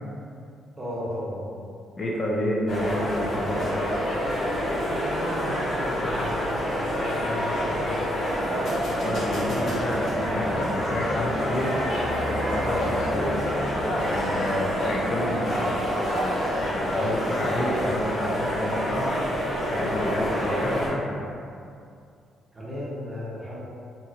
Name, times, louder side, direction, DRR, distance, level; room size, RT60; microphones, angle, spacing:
voice 1, 0.8-1.5 4.7-8.1 9.3-9.7 10.3-10.5 22.5-23.6, left 1 dB, 20° right, -7 dB, 0.8 m, -35 dB
voice 2, 2.0-4.2 9.0-11.7 12.3-13.5 13.8-15.7 16.6-19.1 19.6-21.3, left 1 dB, 40° left, -4 dB, 0.5 m, -30 dB
sound 1, 2.7-20.9, equal, 65° left, 1.3 m, -27 dB
sound 2, 9.1-14.7, equal, 85° left, 0.6 m, -36 dB
2.9 x 2.6 x 2.5 m, 2.4 s
cardioid pair, 90°, 0 cm